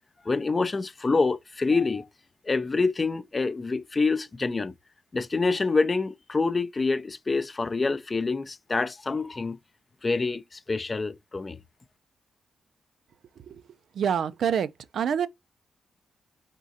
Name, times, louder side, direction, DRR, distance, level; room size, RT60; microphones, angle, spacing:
voice 1, 0.3-2.1 2.5-4.7 5.1-9.6 10.0-11.6, left 3 dB, 30° left, 0.4 m, -26 dB
voice 2, 13.9-15.3, right 8 dB, 75° right, 0.3 m, -27 dB
4.0 x 3.7 x 2.6 m
cardioid pair, 100°, 0 cm